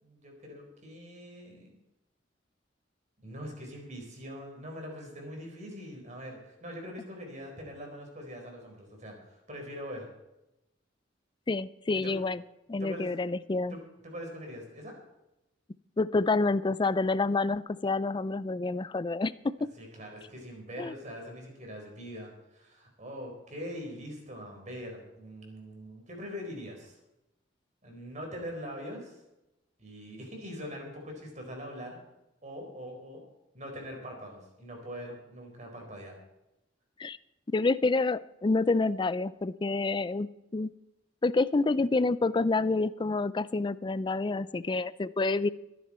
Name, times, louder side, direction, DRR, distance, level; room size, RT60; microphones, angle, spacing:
voice 1, 0.0-1.8 3.2-10.1 11.9-12.2 12.8-13.1 13.7-13.8 14.0-14.9 19.8-27.0 27.8-29.2 29.8-32.0 32.4-33.2 33.5-36.2, equal, 40° right, 2 dB, 4.4 m, -42 dB
voice 2, 11.5-12.4 12.7-13.8 16.0-19.5 20.8-20.9 37.0-37.2 37.5-40.3 40.5-40.7 41.2-45.5, left 3 dB, 25° left, 17 dB, 0.4 m, -28 dB
22.0 x 10.5 x 4.3 m, 0.92 s
head